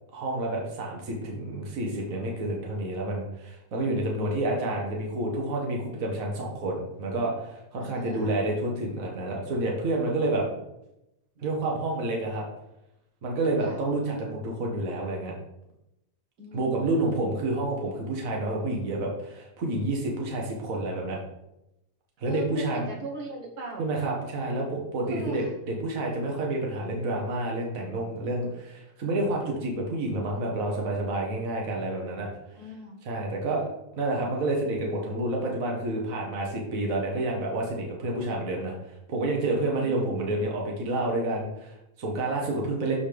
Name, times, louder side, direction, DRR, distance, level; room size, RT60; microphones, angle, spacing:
voice 1, 0.1-10.5 11.4-12.5 13.2-15.3 16.5-21.2 22.2-22.9 23.8-32.3 33.1-33.7 34.0-38.7 39.1-43.0, right 2 dB, 65° right, -1 dB, 1.8 m, -29 dB
voice 2, 7.8-8.4 11.4-11.5 13.6-13.8 16.4-17.4 22.3-23.9 25.1-25.5 32.5-33.0 39.8-40.5, right 2 dB, 80° right, -1 dB, 2.0 m, -40 dB
12.5 x 4.2 x 3.5 m, 0.87 s
omnidirectional pair, 1.6 m